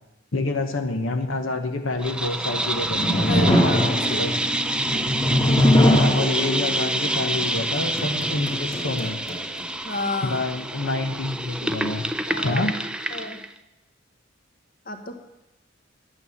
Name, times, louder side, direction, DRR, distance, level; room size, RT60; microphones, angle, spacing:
voice 1, 0.3-4.4 5.8-9.2 10.2-12.0 12.4-12.8, left 2 dB, 80° left, 6 dB, 1.1 m, -27 dB
sound 1, 2.0-13.5, right 1 dB, 5° right, 0.4 m, -28 dB
sound 2, 2.6-9.7, left 1 dB, 20° left, 1.6 m, -23 dB
voice 2, 3.3-4.3 9.8-10.4 12.3-12.7 13.1-13.4 14.9-15.2, left 2 dB, 45° left, 6 dB, 1.2 m, -31 dB
11.0 x 8.9 x 7.2 m, 0.96 s
head